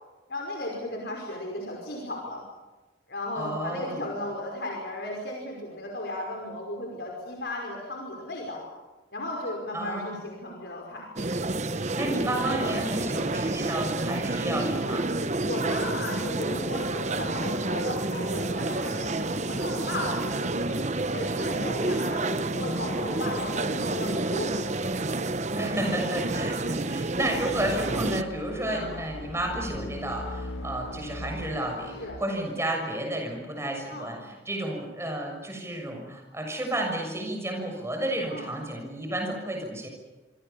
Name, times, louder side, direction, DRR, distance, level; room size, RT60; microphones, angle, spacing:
voice 1, 0.3-2.4 3.1-8.6 9.1-11.3 15.4-20.8 21.1-24.6 28.7-28.9 32.0-32.2 33.9-34.1 38.3-38.5, left 1 dB, 60° left, 0 dB, 5.4 m, -35 dB
voice 2, 3.3-4.0 9.7-10.2 11.7-15.1 22.6-22.8 25.6-39.9, right 1 dB, 15° right, 2 dB, 6.6 m, -32 dB
sound 1, 11.2-28.2, right 2 dB, 35° right, 0.9 m, -29 dB
sound 2, 27.0-32.2, left 1 dB, 85° left, 2.2 m, -39 dB
27.0 x 25.0 x 7.0 m, 1.2 s
head